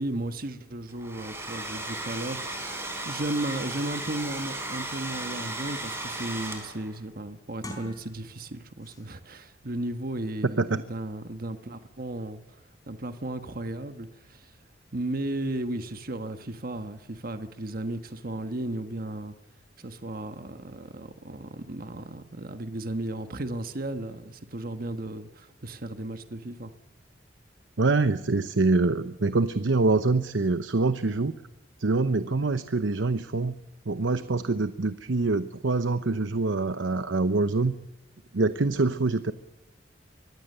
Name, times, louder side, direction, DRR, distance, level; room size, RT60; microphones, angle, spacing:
voice 1, 0.0-12.6 12.9-14.6 14.9-19.4 19.8-26.7, right 1 dB, 50° right, 9 dB, 1.3 m, -35 dB
Domestic sounds home sounds, 0.9-7.0, right 2 dB, 15° right, 4.5 m, -35 dB
sound 1, 3.3-3.5 4.1-4.2 4.6-5.9 6.3-6.7 7.5-8.5 8.8-9.0, left 1 dB, 20° left, 4.2 m, -46 dB
voice 2, 27.8-31.3 31.8-33.5 33.9-37.7 38.3-39.3, right 3 dB, 90° right, 12 dB, 0.8 m, -25 dB
24.0 x 19.0 x 6.8 m, 1.0 s
head